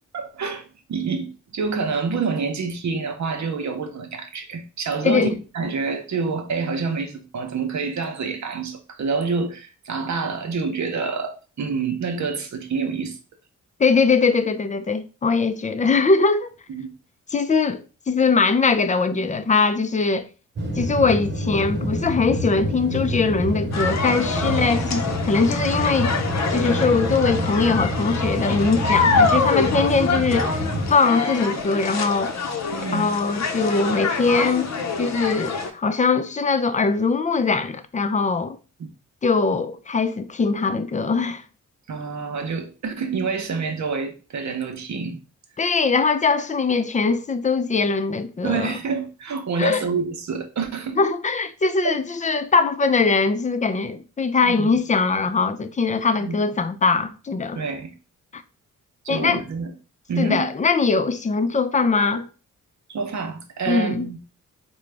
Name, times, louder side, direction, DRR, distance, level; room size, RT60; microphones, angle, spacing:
voice 1, 0.1-0.6 0.9-13.2 16.7-16.9 24.4-24.6 29.6-29.8 32.7-33.1 38.8-38.9 41.9-45.2 48.4-51.0 51.8-52.0 54.4-54.7 56.2-56.4 57.5-57.9 59.0-59.7 60.1-60.5 62.9-64.2, right 4 dB, 60° right, 0.8 m, -27 dB
voice 2, 5.0-5.3 13.8-16.5 17.3-20.3 20.8-26.1 26.5-30.6 30.9-32.4 32.9-34.7 35.0-38.6 39.2-41.4 45.6-48.7 49.6-49.8 51.0-57.6 59.1-59.4 60.2-62.2 63.7-64.1, left 4 dB, 25° left, 0.4 m, -21 dB
sound 1, 20.6-30.9, equal, 35° right, 1.0 m, -27 dB
sound 2, 23.7-35.7, left 4 dB, 55° left, 0.7 m, -25 dB
3.8 x 2.3 x 3.3 m
cardioid pair, 55°, 32 cm